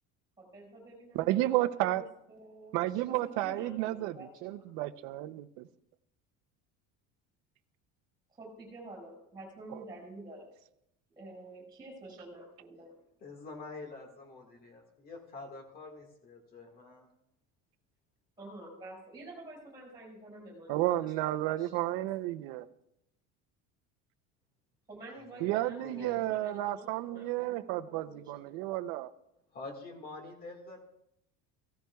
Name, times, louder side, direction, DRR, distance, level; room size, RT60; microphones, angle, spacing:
voice 1, 0.4-1.3 1.7-4.7 8.4-10.5 11.2-12.9 18.4-20.8 21.2-22.1 24.9-27.8 28.0-28.5, right 2 dB, 15° right, -1 dB, 5.3 m, -49 dB
voice 2, 1.1-2.1 2.7-5.7 20.7-22.7 25.4-29.1, right 16 dB, 80° right, 11 dB, 0.7 m, -32 dB
voice 3, 13.2-17.1 25.3-25.5 25.8-26.4 29.5-30.8, left 3 dB, 30° left, 2 dB, 1.8 m, -46 dB
16.5 x 13.0 x 2.3 m, 0.80 s
cardioid pair, 175°, 32 cm